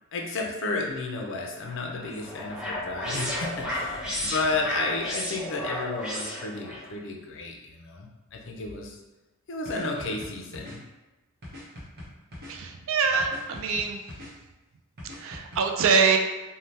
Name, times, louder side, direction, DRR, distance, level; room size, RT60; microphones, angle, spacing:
voice 1, 0.1-9.0 9.5-10.8, left 3 dB, 65° left, 1 dB, 0.5 m, -32 dB
sound 1, 1.7-6.8, left 1 dB, 5° right, 0.6 m, -33 dB
sound 2, 9.6-10.8 11.4-12.5 13.2-14.3 15.0-15.6, left 1 dB, 50° right, 0.8 m, -42 dB
voice 2, 12.5-14.0 15.2-16.2, right 5 dB, 65° right, 4 dB, 0.3 m, -24 dB
2.7 x 2.1 x 3.2 m, 1.1 s
head